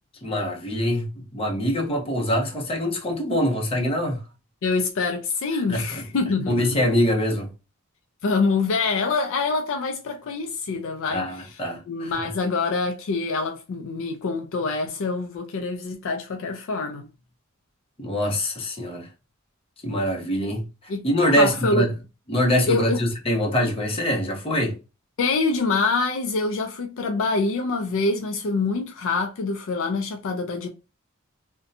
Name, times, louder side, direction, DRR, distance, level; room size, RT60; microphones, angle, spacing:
voice 1, 0.2-1.1 1.3-4.2 5.7-6.0 6.5-7.5 11.1-12.3 18.0-19.1 19.8-20.6 21.0-21.9 22.3-24.8, equal, 25° left, 0.7 m, -24 dB
voice 2, 4.6-6.8 8.2-11.6 11.9-17.1 20.9-21.1 21.4-21.9 22.7-23.0 25.2-30.7, left 3 dB, 65° left, 0.4 m, -25 dB
2.6 x 2.2 x 2.5 m
head